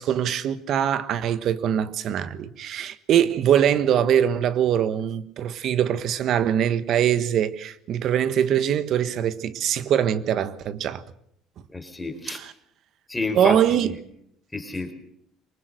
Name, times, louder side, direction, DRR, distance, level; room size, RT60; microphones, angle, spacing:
voice 1, 0.0-11.0 12.3-12.5 13.3-13.9, right 9 dB, 60° right, 1.3 m, -23 dB
voice 2, 11.7-12.4 13.1-13.9 14.5-14.9, left 3 dB, 15° left, 4.2 m, -30 dB
23.5 x 19.5 x 6.7 m
cardioid pair, 100°, 0 cm